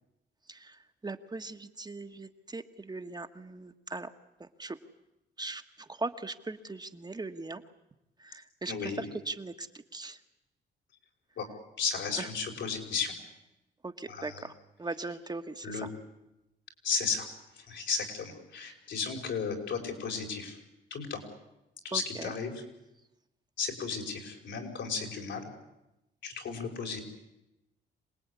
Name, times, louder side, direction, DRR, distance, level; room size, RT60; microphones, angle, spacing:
voice 1, 0.5-4.1 4.4-4.8 5.4-7.6 8.2-10.2 12.2-12.3 13.8-14.5 14.8-15.9 21.9-22.3, right 3 dB, 20° right, 7 dB, 1.4 m, -39 dB
voice 2, 8.7-9.1 11.4-11.5 11.8-13.1 14.1-14.4 15.6-15.9 16.8-17.3 17.6-20.6 20.9-21.2 21.8-22.5 23.6-25.5 26.2-27.0, left 5 dB, 75° left, 2 dB, 5.5 m, -34 dB
26.0 x 19.0 x 9.7 m, 0.94 s
cardioid pair, 90°, 19 cm